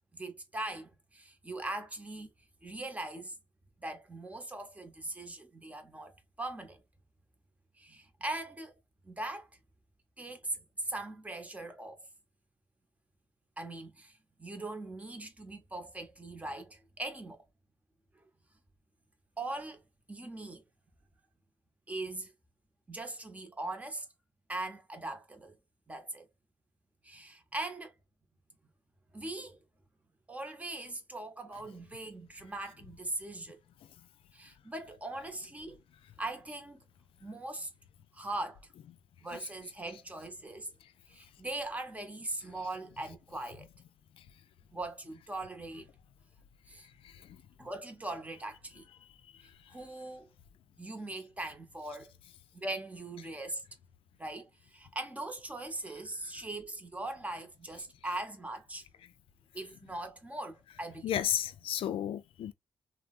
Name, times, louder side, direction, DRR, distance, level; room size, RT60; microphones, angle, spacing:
voice 1, 0.1-2.3 2.6-3.4 3.8-6.8 7.8-8.7 9.0-9.5 10.2-12.1 13.6-17.4 19.4-19.8 20.1-20.6 21.9-22.3 22.9-24.1 24.5-25.6 25.9-26.3 27.0-27.9 29.1-29.6 30.3-33.6 34.3-35.8 36.2-36.9 37.2-37.7 38.1-38.6 39.2-40.7 41.1-43.7 44.7-45.9 46.7-46.9 47.6-48.9 49.4-50.3 50.8-52.1 52.5-53.6 54.2-58.9 59.5-61.1, right 2 dB, 15° right, 0.8 m, -40 dB
voice 2, 47.0-47.4 61.0-62.5, left 10 dB, 80° left, 0.4 m, -33 dB
3.2 x 2.0 x 2.4 m
cardioid pair, 110°, 9 cm